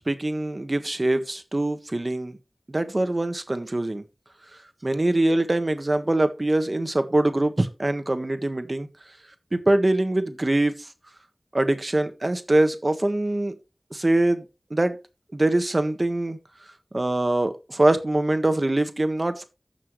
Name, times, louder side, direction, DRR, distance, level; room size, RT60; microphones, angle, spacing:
voice 1, 0.1-2.4 2.7-4.0 4.8-8.9 9.5-10.9 11.5-13.5 13.9-14.4 14.7-15.0 15.3-16.4 16.9-19.4, right 1 dB, 45° right, 1.5 m, -23 dB
14.5 x 6.0 x 3.2 m
wide cardioid pair, 40°, 0 cm